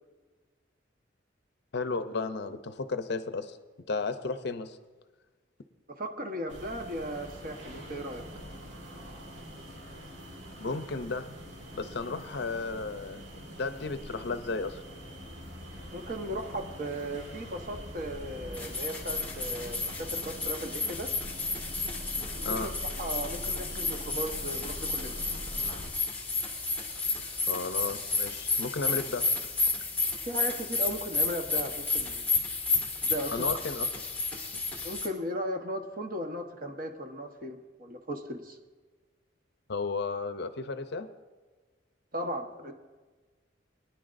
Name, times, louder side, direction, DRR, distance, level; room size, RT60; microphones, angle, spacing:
voice 1, 1.7-3.6 3.9-4.8 10.6-11.4 11.7-13.2 13.6-14.8 22.4-22.7 27.5-29.3 33.3-33.9 39.7-41.1, left 4 dB, 60° left, 10 dB, 0.6 m, -33 dB
voice 2, 5.9-8.2 15.9-21.1 22.2-22.7 23.0-25.2 30.3-32.3 33.0-33.4 34.8-38.6 42.1-42.7, right 1 dB, 50° right, 4 dB, 1.1 m, -36 dB
sound 1, 6.5-25.9, equal, 80° right, 2.4 m, -44 dB
Blood Pressure Cuff, 18.5-35.1, left 4 dB, 10° left, 1.8 m, -32 dB
22.0 x 10.0 x 2.6 m, 1.3 s
head